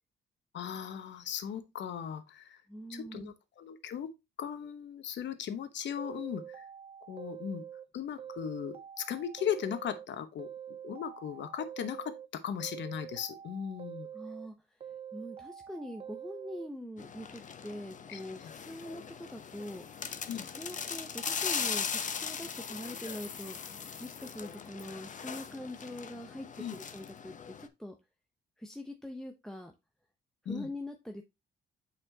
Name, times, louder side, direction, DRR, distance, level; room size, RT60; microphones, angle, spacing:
voice 1, 0.5-2.6 2.9-4.1 4.4-6.7 7.1-7.6 7.9-14.1 18.1-18.5 20.3-20.5 26.6-26.8 30.4-30.7, left 8 dB, 65° left, 0.9 m, -38 dB
voice 2, 2.7-3.3 14.1-19.8 20.5-23.6 24.0-27.9 28.6-29.7 30.4-31.2, left 1 dB, ahead, 0.7 m, -43 dB
sound 1, 6.0-7.9 8.2-10.1 10.4-12.3 12.6-14.5 14.8-16.7, right 9 dB, 30° right, 0.4 m, -46 dB
sound 2, 17.0-27.7, left 6 dB, 40° left, 0.7 m, -39 dB
8.0 x 4.3 x 2.8 m
cardioid pair, 90°, 20 cm